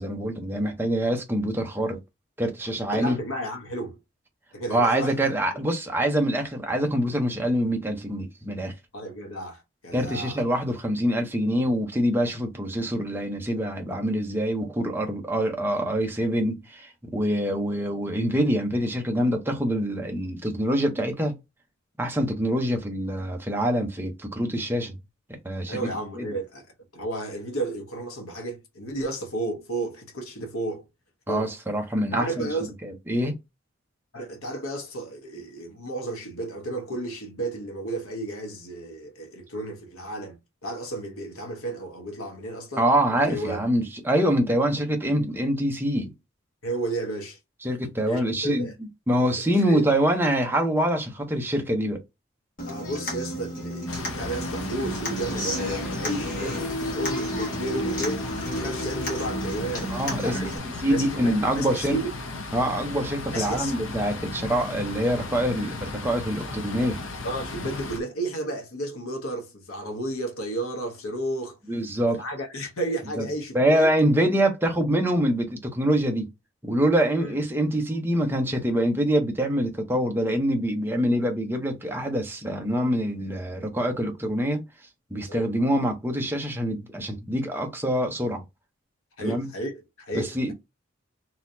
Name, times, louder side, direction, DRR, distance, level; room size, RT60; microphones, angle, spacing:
voice 1, 0.0-2.0 2.4-3.2 4.7-8.7 9.9-21.4 22.0-24.9 25.3-25.8 26.2-26.3 31.3-32.5 32.8-33.3 42.8-46.1 47.6-48.7 49.1-52.0 59.9-60.5 60.8-62.0 62.5-67.0 71.7-72.2 73.2-73.3 73.5-76.3 76.6-84.6 85.1-88.4 89.2-89.5 90.1-90.5, equal, 10° right, 0.8 m, -25 dB
voice 2, 2.9-4.0 4.5-5.2 8.9-10.4 25.7-26.7 26.9-30.8 31.3-31.5 32.1-32.7 34.1-43.6 46.6-47.4 48.1-48.7 49.4-49.9 52.6-58.3 58.5-62.1 63.3-63.7 67.2-71.6 72.2-73.9 77.2-77.4 85.3-85.5 89.2-90.5, right 1 dB, 85° left, 1.1 m, -33 dB
Human voice / Acoustic guitar, 52.6-60.6, equal, 40° left, 1.4 m, -31 dB
sound 1, 53.9-68.0, left 3 dB, 70° left, 0.8 m, -35 dB
3.9 x 2.9 x 2.7 m
head